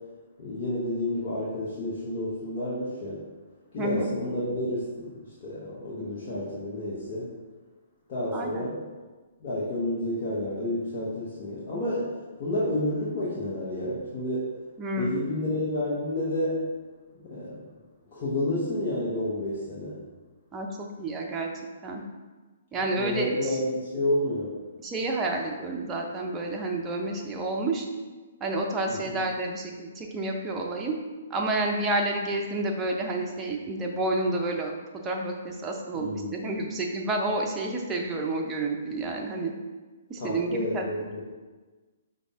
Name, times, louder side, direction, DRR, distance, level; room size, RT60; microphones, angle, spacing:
voice 1, 0.4-3.2 3.7-7.3 8.1-8.8 9.4-14.5 15.0-16.7 17.2-17.6 18.1-20.0 23.0-24.5 28.9-29.2 36.0-36.4 40.2-41.2, left 1 dB, 45° left, -9 dB, 1.2 m, -30 dB
voice 2, 3.8-4.1 8.3-8.7 14.8-15.2 20.5-21.5 21.8-22.0 22.7-23.6 24.8-27.9 28.4-31.0 31.3-34.7 35.0-39.5 40.1-40.8, right 2 dB, 20° right, 0 dB, 0.6 m, -30 dB
5.3 x 2.6 x 3.5 m, 1.3 s
hypercardioid pair, 130°, 0 cm